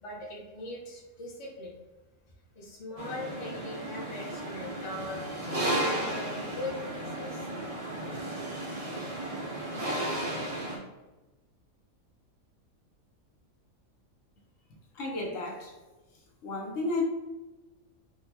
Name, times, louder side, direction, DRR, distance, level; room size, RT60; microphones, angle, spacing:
voice 1, 0.0-1.8 2.5-5.3 5.7-7.5, left 1 dB, 35° left, -4 dB, 0.5 m, -40 dB
sound 1, 3.0-10.8, right 1 dB, 55° right, 0.4 m, -34 dB
voice 2, 14.9-15.7 16.4-17.0, left 2 dB, 70° left, -3 dB, 1.1 m, -33 dB
3.8 x 2.3 x 2.8 m, 1.1 s
omnidirectional pair, 1.4 m